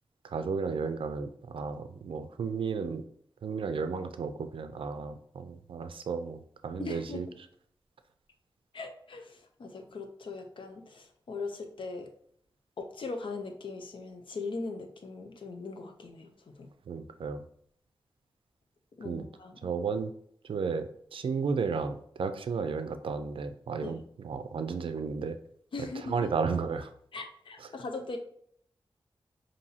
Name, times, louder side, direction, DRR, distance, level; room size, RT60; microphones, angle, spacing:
voice 1, 0.2-3.0 3.4-7.3 16.9-17.4 19.1-19.2 19.6-20.1 20.5-24.0 24.2-25.4 26.1-26.9, right 5 dB, 85° right, 9 dB, 0.4 m, -33 dB
voice 2, 6.8-7.3 8.7-12.1 12.8-16.7 19.0-19.7 23.8-24.0 25.7-26.2 27.1-28.2, left 3 dB, 75° left, 4 dB, 0.6 m, -40 dB
5.4 x 2.7 x 2.8 m, 0.66 s
wide cardioid pair, 100°, 9 cm